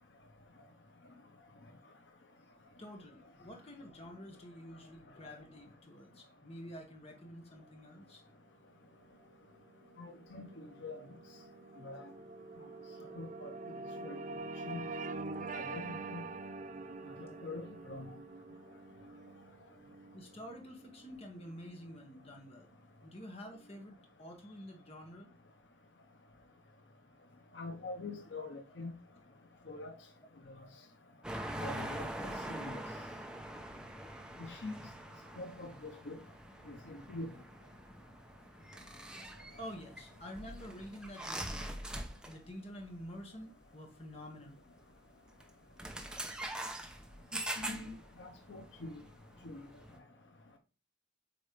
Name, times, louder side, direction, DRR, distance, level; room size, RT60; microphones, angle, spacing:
voice 1, 2.8-8.2 20.1-22.7 23.0-25.3 39.6-41.8 42.3-44.6, equal, 35° left, 1.7 m, -49 dB
sound 1, 9.4-21.9, right 3 dB, 45° right, 0.5 m, -46 dB
voice 2, 10.0-10.4 10.8-11.0 11.8-12.0 13.2-13.5 14.0-14.2 14.7-14.8 15.4-16.3 17.2-18.1 27.6-28.9 29.7-29.9 31.6-32.1 32.5-32.8 34.5-34.7 35.4-36.2 36.7-37.3 47.6-47.9 48.2-48.9 49.4-49.6, left 2 dB, 80° left, 1.0 m, -44 dB
sound 2, 31.2-42.5 42.8-43.0 44.2-44.3 45.3-45.5 45.8-50.0, right 1 dB, 5° right, 0.7 m, -44 dB
8.2 x 4.3 x 3.3 m
head